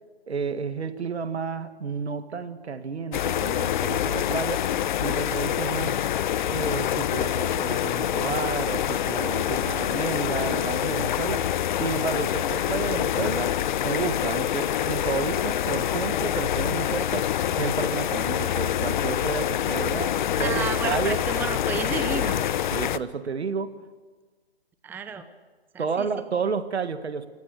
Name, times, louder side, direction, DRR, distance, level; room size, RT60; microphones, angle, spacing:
voice 1, 0.3-6.0 6.5-11.5 11.8-13.5 13.8-17.3 17.6-21.2 22.7-23.7 25.8-27.3, right 5 dB, 85° right, 10 dB, 1.9 m, -31 dB
sound 1, 3.1-23.0, left 11 dB, 45° left, 0.7 m, -26 dB
voice 2, 20.4-22.5 24.8-25.2 25.7-26.1, right 6 dB, 5° right, 10 dB, 0.7 m, -31 dB
27.5 x 16.5 x 7.6 m, 1.4 s
hypercardioid pair, 145°, 32 cm